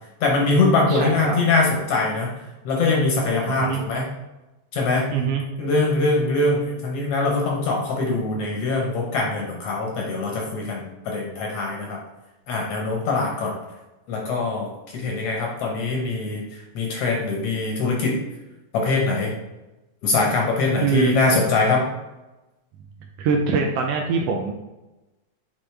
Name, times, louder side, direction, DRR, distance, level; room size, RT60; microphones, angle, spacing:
voice 1, 0.2-2.4 2.6-4.1 4.7-5.1 5.6-12.0 12.5-13.5 14.1-18.2 18.7-19.3 20.0-21.8, left 3 dB, 65° left, -1 dB, 1.6 m, -22 dB
voice 2, 0.9-1.4 3.6-3.8 5.1-5.4 20.8-21.1 23.2-24.5, right 5 dB, 85° right, 2 dB, 1.4 m, -23 dB
8.1 x 3.7 x 3.3 m, 1.0 s
omnidirectional pair, 3.5 m